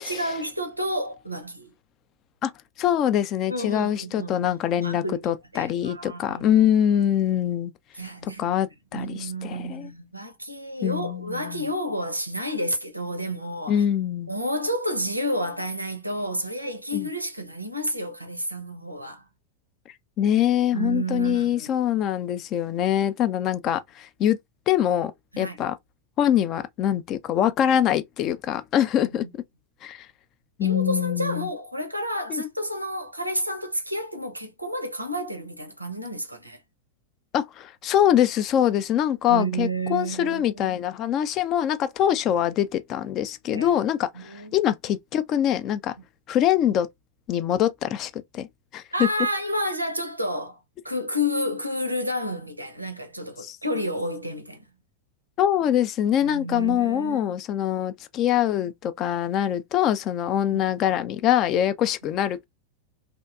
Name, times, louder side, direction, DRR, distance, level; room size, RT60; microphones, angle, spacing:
voice 1, 0.0-1.7 3.5-4.5 4.8-6.6 8.0-8.5 8.9-13.8 14.3-19.3 20.7-21.7 25.3-25.6 29.1-29.3 30.6-36.6 39.3-40.8 43.5-43.7 44.1-44.6 48.9-50.6 50.8-54.6 56.2-57.4 60.5-60.6, equal, 85° right, 0.5 m, -30 dB
voice 2, 2.8-7.7 8.4-9.9 10.8-11.7 13.7-14.3 16.9-17.1 20.2-24.4 24.7-25.1 25.4-25.7 26.2-29.3 29.8-30.1 30.6-31.5 32.3-32.4 37.3-45.9 46.3-46.9 47.3-48.5 48.7-49.1 53.4-53.6 55.4-62.5, left 10 dB, 35° left, 0.4 m, -24 dB
2.7 x 2.1 x 2.3 m
figure-of-eight pair, 90°, 0 cm